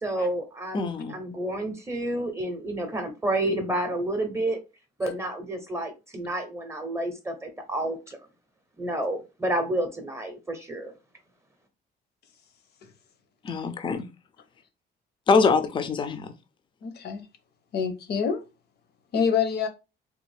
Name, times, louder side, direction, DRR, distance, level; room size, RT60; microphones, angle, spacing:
voice 1, 0.0-4.6 5.0-8.2 8.8-10.9, right 1 dB, 15° right, 0.6 m, -30 dB
voice 2, 0.7-1.1 13.4-14.1 15.3-16.3, left 4 dB, 25° left, 0.4 m, -23 dB
voice 3, 16.8-17.3 17.7-18.4 19.1-19.7, left 6 dB, 65° left, 0.8 m, -26 dB
3.4 x 2.4 x 3.2 m
cardioid pair, 140°, 18 cm